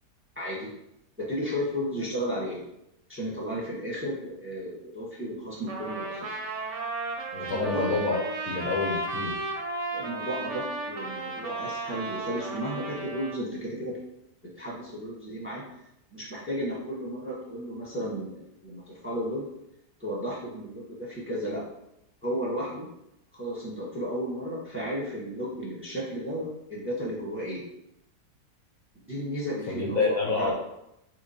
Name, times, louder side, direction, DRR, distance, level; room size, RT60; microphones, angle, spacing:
voice 1, 0.3-0.7 1.2-2.6 3.1-6.3 7.5-7.9 9.9-13.9 14.4-15.6 16.1-19.5 20.0-21.6 22.2-22.9 23.3-27.6 29.1-30.5, equal, 10° right, -6 dB, 0.9 m, -33 dB
Trumpet, 5.7-13.4, right 2 dB, 55° right, 0.9 m, -34 dB
voice 2, 7.3-8.2 8.5-9.5 29.7-30.5, left 3 dB, 60° left, -1 dB, 1.1 m, -28 dB
3.7 x 3.3 x 4.2 m, 0.83 s
omnidirectional pair, 1.7 m